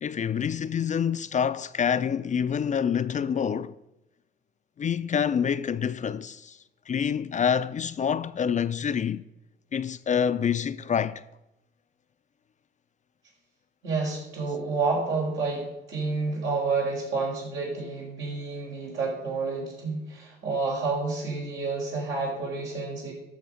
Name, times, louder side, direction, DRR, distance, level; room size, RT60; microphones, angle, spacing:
voice 1, 0.0-3.7 4.8-6.6 6.9-9.2 9.7-11.2, left 7 dB, 40° left, 0.5 m, -27 dB
voice 2, 13.8-23.1, right 4 dB, 80° right, 4.7 m, -29 dB
13.5 x 5.9 x 5.1 m
cardioid pair, 90°, 20 cm